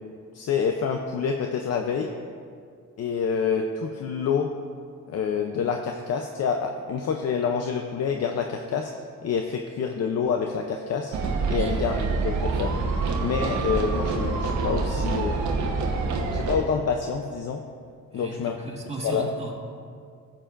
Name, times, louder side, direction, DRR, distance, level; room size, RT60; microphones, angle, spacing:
voice 1, 0.3-2.1 3.0-4.5 5.1-8.9 9.2-11.1 11.5-12.8 13.2-15.6 16.3-17.6 18.1-18.6 19.0-19.3, left 6 dB, 55° left, 4 dB, 0.6 m, -27 dB
sound 1, 11.1-16.6, right 4 dB, 70° right, 1.1 m, -26 dB
voice 2, 18.1-19.5, right 1 dB, 20° right, -3 dB, 2.1 m, -36 dB
14.5 x 7.5 x 2.5 m, 2.2 s
cardioid pair, 90°, 30 cm